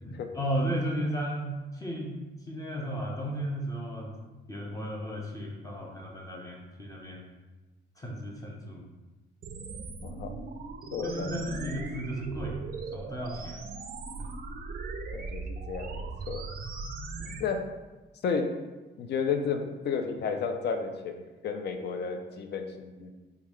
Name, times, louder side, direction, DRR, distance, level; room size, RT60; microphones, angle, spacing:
voice 1, 0.0-2.1 2.5-4.1 4.5-7.2 8.0-8.8 11.0-12.6 12.9-13.6 14.2-14.3 17.2-17.4, equal, 15° left, -2 dB, 0.6 m, -34 dB
sound 1, 9.4-17.4, right 3 dB, 50° right, 0.4 m, -39 dB
voice 2, 10.9-11.3 15.1-16.4 17.4-17.6 18.2-18.6 19.0-23.1, left 5 dB, 55° left, 6 dB, 0.4 m, -32 dB
3.5 x 2.3 x 3.1 m, 1.2 s
cardioid pair, 90°, 20 cm